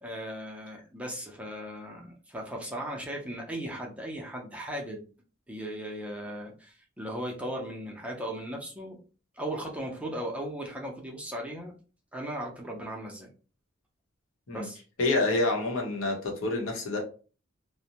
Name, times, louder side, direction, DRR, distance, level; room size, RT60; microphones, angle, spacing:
voice 1, 0.0-5.0 5.5-9.0 9.3-11.7 12.1-13.3 14.5-14.8, right 1 dB, 5° right, -1 dB, 0.5 m, -37 dB
voice 2, 15.0-17.0, left 2 dB, 85° left, 0 dB, 0.9 m, -27 dB
2.5 x 2.1 x 2.8 m, 0.36 s
head